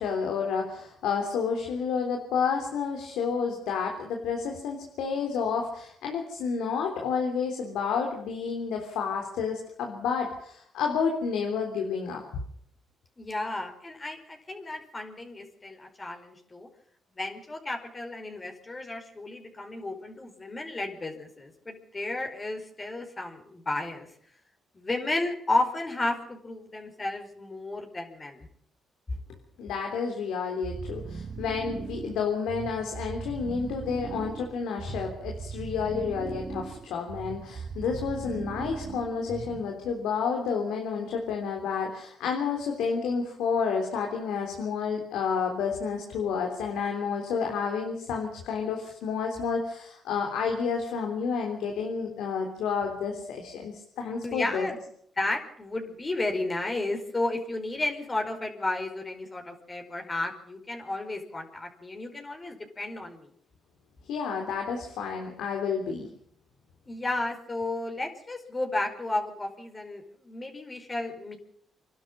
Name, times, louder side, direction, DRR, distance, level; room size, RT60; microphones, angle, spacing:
voice 1, 0.0-12.2 29.6-54.7 64.1-66.1, left 6 dB, 85° left, 2 dB, 3.5 m, -30 dB
voice 2, 13.2-16.7 17.1-24.1 24.7-28.5 54.2-54.8 55.2-63.3 66.9-71.4, left 2 dB, 25° left, 4 dB, 4.9 m, -33 dB
sound 1, 30.6-39.9, right 5 dB, 45° right, 1.4 m, -39 dB
26.5 x 12.0 x 8.9 m, 0.68 s
cardioid pair, 90°, 0 cm